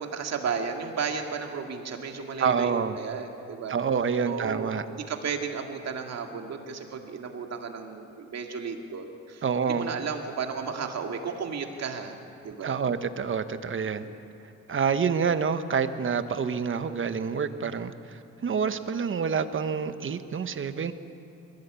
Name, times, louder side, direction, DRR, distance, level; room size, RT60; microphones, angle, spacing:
voice 1, 0.0-3.8 4.3-12.2 12.4-12.8 14.0-14.2, right 5 dB, 60° right, 3 dB, 2.3 m, -34 dB
voice 2, 2.4-3.0 3.7-4.8 9.4-9.9 12.6-14.0 14.7-20.9, right 6 dB, 40° right, 10 dB, 1.1 m, -27 dB
22.0 x 16.0 x 8.4 m, 2.8 s
cardioid pair, 90°, 30 cm